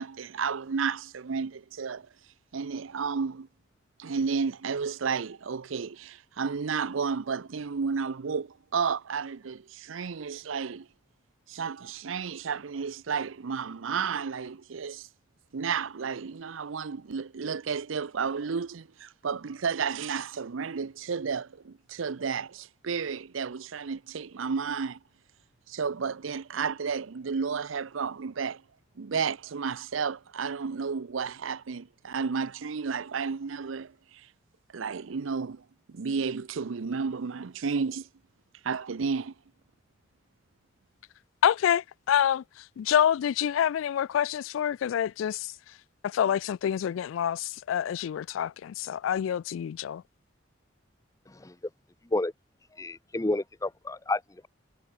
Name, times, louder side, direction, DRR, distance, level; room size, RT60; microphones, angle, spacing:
voice 1, 0.0-2.1 2.5-3.5 4.0-10.9 11.5-15.1 15.5-25.0 25.7-28.6 29.0-34.3 34.7-38.1 38.6-39.3, right 5 dB, 85° right, 0.6 m, -32 dB
voice 2, 41.4-42.4 42.8-45.5 46.0-50.0, left 9 dB, 80° left, 0.3 m, -27 dB
voice 3, 52.8-54.5, left 2 dB, 15° left, 0.7 m, -30 dB
head